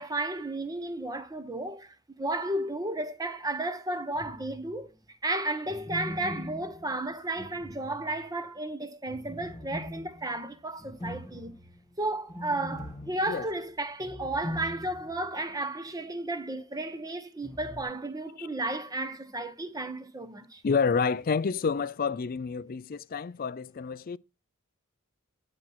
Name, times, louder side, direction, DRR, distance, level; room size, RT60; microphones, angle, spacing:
voice 1, 0.0-4.9 5.2-11.5 12.0-20.6, right 2 dB, 15° right, 0.9 m, -33 dB
sound 1, 4.1-4.9 5.6-8.4 9.1-15.3 15.6-15.7 17.4-17.8, left 1 dB, 15° left, 1.6 m, -42 dB
voice 2, 20.6-24.2, left 5 dB, 40° left, 0.4 m, -29 dB
10.5 x 4.3 x 6.0 m
head